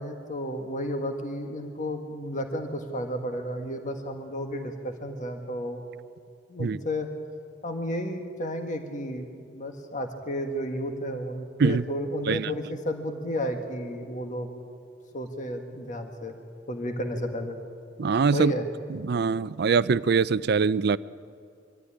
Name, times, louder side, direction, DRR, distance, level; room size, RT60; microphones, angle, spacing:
voice 1, 0.0-5.8 6.5-7.1 7.6-14.5 15.1-16.4 16.7-17.6 18.3-18.6, equal, 40° left, 5 dB, 1.6 m, -32 dB
voice 2, 18.0-18.5 18.9-21.0, right 5 dB, 60° right, 17 dB, 0.4 m, -23 dB
24.5 x 13.5 x 9.9 m, 2.3 s
head